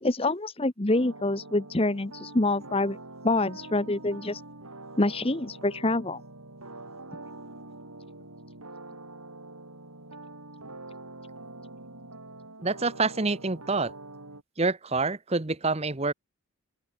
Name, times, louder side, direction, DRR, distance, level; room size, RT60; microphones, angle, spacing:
voice 1, 0.0-3.0 3.2-4.4 5.0-6.2, left 2 dB, 25° left, 1.0 m, -26 dB
sound 1, 0.9-14.4, right 2 dB, 90° right, 7.6 m, -45 dB
voice 2, 12.6-13.9 14.6-16.1, right 3 dB, 30° right, 1.0 m, -27 dB
open air
head